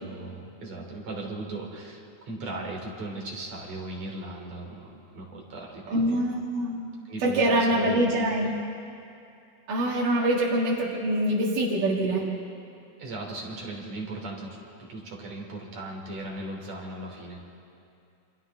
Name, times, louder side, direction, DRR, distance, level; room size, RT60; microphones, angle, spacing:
voice 1, 0.0-1.7 2.3-4.6 5.2-5.3 5.5-5.7 7.1-8.0 13.0-14.3 15.2-17.4, right 2 dB, 55° right, -1 dB, 4.1 m, -37 dB
voice 2, 5.9-6.9 7.2-8.5 9.7-12.3, right 1 dB, 85° right, -4 dB, 3.5 m, -24 dB
28.5 x 27.0 x 3.6 m, 2.6 s
omnidirectional pair, 3.6 m